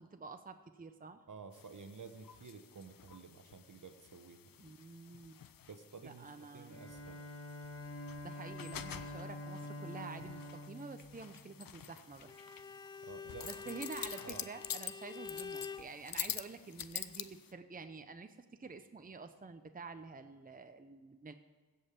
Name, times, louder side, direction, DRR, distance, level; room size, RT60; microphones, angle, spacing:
voice 1, 0.0-1.3 4.6-5.4 6.0-6.8 8.2-12.3 13.5-18.3 18.6-21.3, right 4 dB, 25° right, 8 dB, 0.7 m, -49 dB
voice 2, 1.3-4.5 5.7-7.2 13.0-13.8 14.2-14.5, right 5 dB, 60° right, 8 dB, 1.1 m, -52 dB
sound 1, 1.5-17.5, left 9 dB, 70° left, 0.6 m, -48 dB
Bowed string instrument, 6.6-11.8, left 2 dB, 40° left, 2.0 m, -47 dB
Bowed string instrument 2, 12.2-15.9, left 5 dB, 15° left, 0.4 m, -47 dB
15.5 x 5.6 x 7.3 m, 1.4 s
cardioid pair, 45°, 35 cm